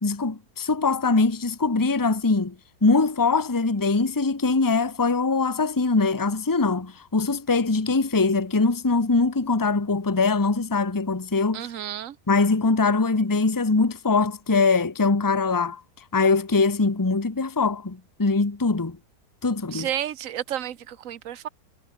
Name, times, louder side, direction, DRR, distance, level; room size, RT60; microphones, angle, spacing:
voice 1, 0.0-2.5 2.8-11.6 12.3-15.8 16.1-19.0 19.4-19.9, left 3 dB, 15° left, 1.1 m, -22 dB
voice 2, 11.5-12.1 19.7-21.5, right 11 dB, 55° right, 1.3 m, -31 dB
omnidirectional pair, 1.8 m